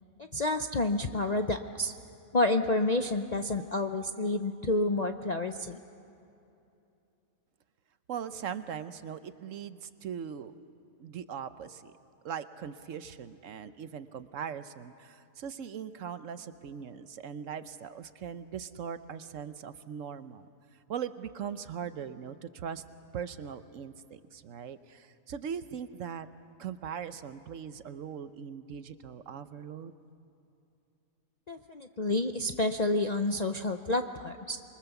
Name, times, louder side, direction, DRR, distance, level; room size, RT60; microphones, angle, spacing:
voice 1, 0.2-1.9 2.3-5.8 31.5-34.6, left 2 dB, 50° left, 5 dB, 0.5 m, -29 dB
voice 2, 8.1-10.5 11.0-11.9 12.2-20.5 20.9-22.8 23.1-26.3 26.6-29.9, right 8 dB, 60° right, 12 dB, 1.0 m, -40 dB
26.5 x 24.0 x 7.1 m, 2.7 s
omnidirectional pair, 1.7 m